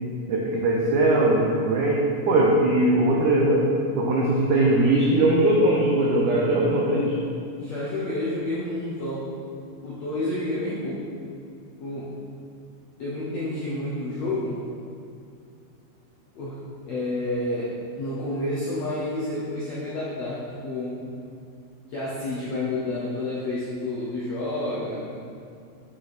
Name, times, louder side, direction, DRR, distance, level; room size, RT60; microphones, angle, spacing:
voice 1, 0.3-2.0 2.3-3.7 3.9-7.1, right 1 dB, 90° right, -3 dB, 1.7 m, -20 dB
voice 2, 7.6-9.3 9.8-11.0 11.8-12.1 13.0-14.6 16.3-21.0 21.9-25.1, left 1 dB, 75° left, -8 dB, 1.5 m, -29 dB
8.6 x 5.0 x 4.2 m, 2.4 s
omnidirectional pair, 4.6 m